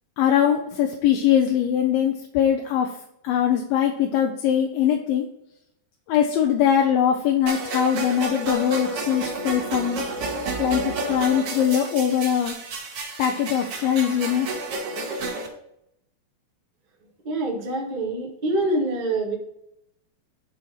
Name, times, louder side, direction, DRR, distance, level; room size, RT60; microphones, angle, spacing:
voice 1, 0.2-2.9 3.2-5.3 6.1-10.0 10.6-12.6 13.2-14.5, left 9 dB, 80° left, 3 dB, 2.5 m, -22 dB
sound 1, 7.5-15.5, right 2 dB, 50° right, 1.9 m, -30 dB
voice 2, 17.2-19.3, right 2 dB, 70° right, -1 dB, 0.4 m, -25 dB
10.5 x 4.6 x 4.3 m, 0.78 s
omnidirectional pair, 4.3 m